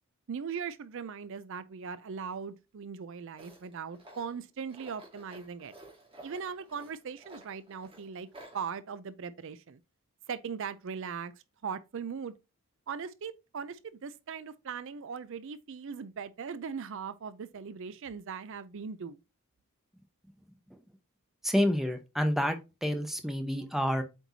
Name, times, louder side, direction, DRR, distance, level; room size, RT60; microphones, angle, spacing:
voice 1, 0.3-5.7 6.2-8.3 8.5-9.8 10.3-11.3 11.6-12.3 12.9-19.2, right 6 dB, 55° right, 0.4 m, -39 dB
Tools, 3.4-8.6, right 1 dB, 25° right, 2.6 m, -53 dB
voice 2, 21.4-24.0, equal, ahead, 0.8 m, -29 dB
8.0 x 4.5 x 2.7 m
head